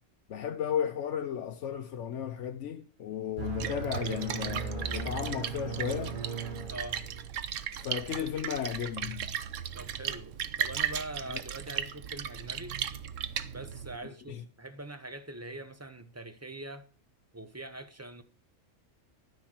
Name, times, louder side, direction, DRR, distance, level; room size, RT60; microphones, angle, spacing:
voice 1, 0.3-6.2 7.8-9.3 14.0-14.4, left 9 dB, 70° left, 1.0 m, -34 dB
sound 1, 3.4-7.5, right 5 dB, 40° right, 1.4 m, -37 dB
Splash splatter, 3.4-14.0, right 9 dB, 75° right, 1.1 m, -37 dB
voice 2, 6.7-7.0 9.7-12.8 13.5-16.9 17.3-18.2, right 2 dB, 15° right, 0.8 m, -43 dB
12.5 x 5.7 x 7.3 m
omnidirectional pair, 1.3 m